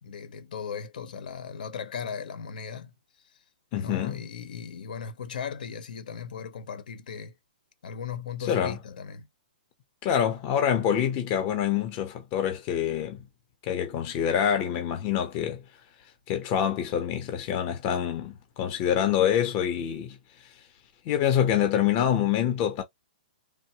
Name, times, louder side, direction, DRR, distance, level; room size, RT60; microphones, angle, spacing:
voice 1, 0.0-2.9 3.3-3.4 3.7-7.3 7.8-9.3, left 6 dB, 65° left, 0.9 m, -37 dB
voice 2, 3.7-4.2 8.5-8.8 10.0-13.3 13.7-15.6 16.3-20.2 21.0-22.8, left 9 dB, 25° left, 0.7 m, -26 dB
3.4 x 2.2 x 2.8 m
hypercardioid pair, 160°, 5 cm